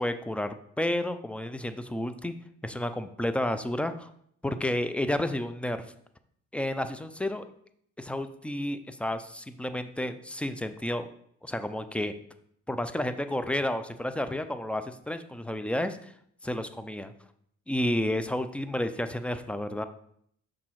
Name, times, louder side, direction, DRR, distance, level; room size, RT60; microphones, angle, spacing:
voice 1, 0.0-2.3 2.6-4.1 4.4-5.8 6.5-7.4 8.0-11.1 11.4-12.1 12.7-16.1 16.4-17.1 17.7-19.8, left 1 dB, 5° left, 10 dB, 0.4 m, -31 dB
5.9 x 3.8 x 4.6 m, 0.69 s
cardioid pair, 90°, 30 cm